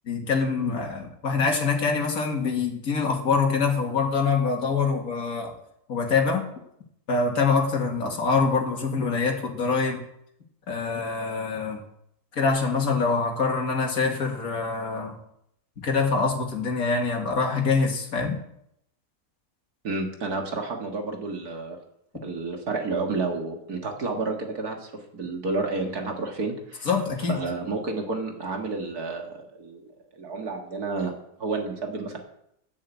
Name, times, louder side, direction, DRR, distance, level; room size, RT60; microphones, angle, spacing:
voice 1, 0.1-5.5 5.9-6.5 7.1-10.0 10.7-11.8 12.4-15.2 15.8-18.4 26.9-27.4, left 4 dB, 60° left, 1 dB, 2.5 m, -25 dB
voice 2, 19.8-21.8 22.2-26.9 27.3-29.8 30.1-31.1 31.4-32.2, right 3 dB, 65° right, 3 dB, 2.4 m, -30 dB
10.5 x 10.0 x 8.4 m, 0.76 s
omnidirectional pair, 1.7 m